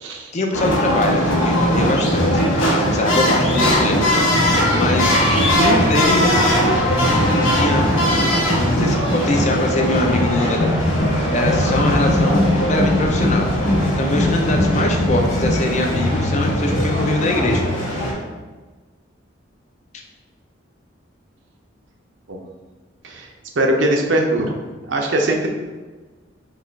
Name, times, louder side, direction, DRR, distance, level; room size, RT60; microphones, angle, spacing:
voice 1, 0.3-2.4 2.9-4.2 4.7-5.2 5.5-6.7 7.5-7.8 8.6-10.7 11.3-13.5 14.0-17.7, left 2 dB, 40° left, 2 dB, 0.5 m, -23 dB
sound 1, 0.5-18.1, equal, 90° left, 1.2 m, -18 dB
voice 2, 23.6-24.6 24.8-25.5, right 1 dB, 75° right, 2 dB, 0.7 m, -20 dB
4.8 x 2.4 x 4.5 m, 1.3 s
head